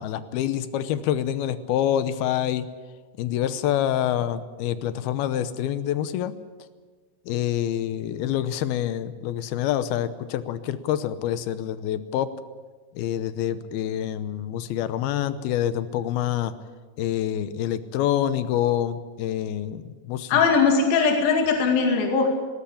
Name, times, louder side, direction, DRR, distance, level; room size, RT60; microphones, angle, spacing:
voice 1, 0.0-2.7 3.2-6.3 7.3-12.3 13.0-16.5 17.0-20.4, left 11 dB, 75° left, 13 dB, 2.4 m, -26 dB
voice 2, 20.3-22.3, left 5 dB, 55° left, 2 dB, 3.8 m, -20 dB
19.0 x 19.0 x 8.6 m, 1.4 s
omnidirectional pair, 5.2 m